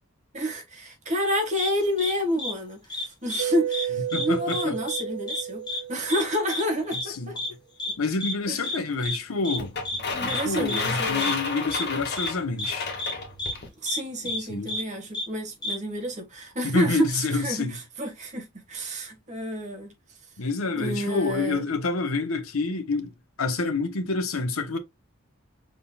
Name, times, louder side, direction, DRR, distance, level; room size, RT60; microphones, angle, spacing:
voice 1, 0.3-7.4 7.9-8.0 8.5-8.7 10.1-11.3 13.8-19.9 20.7-21.6, equal, 35° right, 1.5 m, -29 dB
sound 1, 1.6-1.7 2.0-2.1 2.4-2.5 2.9-3.4 3.7-4.6 4.9-5.0 5.3-5.4 5.7-5.8 6.1-6.2 6.5-6.6 6.9-7.0 7.4-7.5 7.8-7.9 8.2-8.3 8.6-8.8 9.0-9.2 9.4-9.6 9.8-10.0 10.3-10.4 10.7-10.8 11.2-11.3 11.7-11.8 12.2-12.3 12.6-12.7 13.0-13.1 13.4-13.5 13.9-14.0 14.3-14.4 14.7-14.8 15.1-15.3 15.6-15.7, left 2 dB, 20° left, 1.1 m, -30 dB
Mallet percussion, 3.4-6.9, right 11 dB, 80° right, 0.6 m, -32 dB
voice 2, 4.1-4.8 7.1-7.3 8.0-9.7 10.2-12.9 14.5-14.7 16.6-17.8 20.4-23.1 23.4-24.8, left 3 dB, 85° left, 1.0 m, -28 dB
sound 2, 9.6-13.7, left 4 dB, 50° left, 1.7 m, -31 dB
5.5 x 3.8 x 2.3 m
head